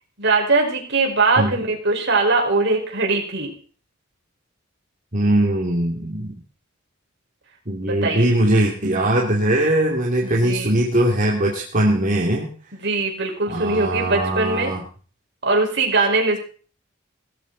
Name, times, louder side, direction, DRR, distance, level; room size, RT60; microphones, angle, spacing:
voice 1, 0.2-3.5 7.8-8.2 10.2-10.8 12.7-14.8 15.4-16.4, right 3 dB, 60° right, 1 dB, 5.2 m, -21 dB
voice 2, 5.1-6.4 7.7-12.5 13.5-14.8, right 1 dB, 40° right, -2 dB, 2.9 m, -20 dB
18.0 x 15.0 x 4.1 m, 0.41 s
head